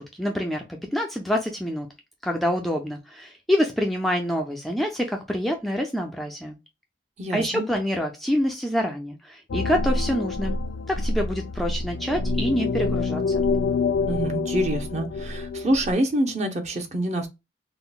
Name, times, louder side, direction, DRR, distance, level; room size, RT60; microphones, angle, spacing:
voice 1, 0.0-1.9 2.2-6.6 7.3-10.6 10.9-13.4, equal, ahead, 0.3 m, -26 dB
voice 2, 7.2-7.6 14.1-17.3, right 1 dB, 40° right, 0.7 m, -26 dB
sound 1, 9.5-15.9, left 3 dB, 80° left, 0.4 m, -27 dB
3.7 x 2.0 x 2.2 m
head